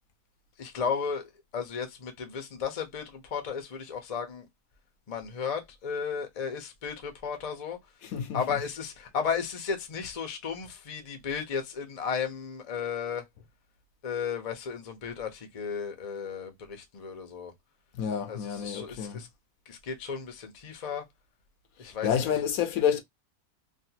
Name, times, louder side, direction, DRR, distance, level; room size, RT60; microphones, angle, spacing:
voice 1, 0.6-4.5 5.1-7.8 8.3-13.2 14.0-17.5 18.3-19.3 19.7-21.0 21.8-22.3, left 6 dB, 40° left, 0.5 m, -34 dB
voice 2, 8.0-8.4 17.9-19.2 21.8-23.0, left 8 dB, 70° left, 1.0 m, -29 dB
3.2 x 2.3 x 2.7 m
omnidirectional pair, 1.7 m